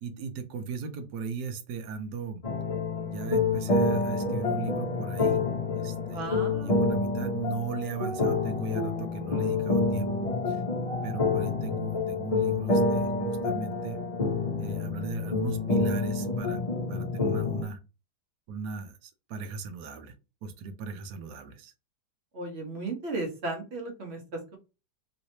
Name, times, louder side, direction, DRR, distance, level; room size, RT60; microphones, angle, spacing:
voice 1, 0.0-2.4 3.1-5.5 5.7-10.1 10.5-10.6 11.0-14.0 14.6-16.6 16.9-17.8 18.5-20.1 20.4-21.7, right 5 dB, 70° right, 9 dB, 1.1 m, -37 dB
sound 1, 2.4-17.6, left 3 dB, 55° left, 0.4 m, -28 dB
voice 2, 6.1-6.9 22.3-24.6, right 2 dB, 45° right, 3 dB, 1.0 m, -35 dB
3.2 x 3.0 x 2.7 m, 0.29 s
omnidirectional pair, 1.9 m